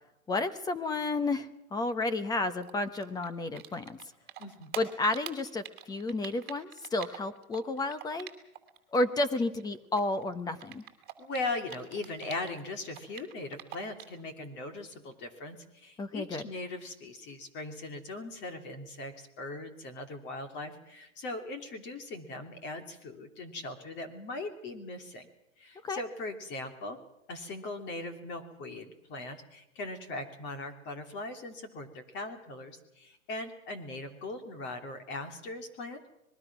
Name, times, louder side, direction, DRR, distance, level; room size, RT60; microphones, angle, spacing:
voice 1, 0.3-4.0 4.8-8.3 8.9-10.8 16.0-16.4 25.8-26.0, left 2 dB, 10° left, 11 dB, 0.9 m, -31 dB
Typing, 2.6-4.0 4.3-8.8 9.0-12.6 12.9-14.2, right 13 dB, 20° right, 3.0 m, -45 dB
voice 2, 4.4-4.7 11.2-25.3 25.6-27.0 27.3-36.0, left 2 dB, 25° left, 7 dB, 3.0 m, -40 dB
26.0 x 21.0 x 6.1 m, 0.86 s
hypercardioid pair, 150°, 42 cm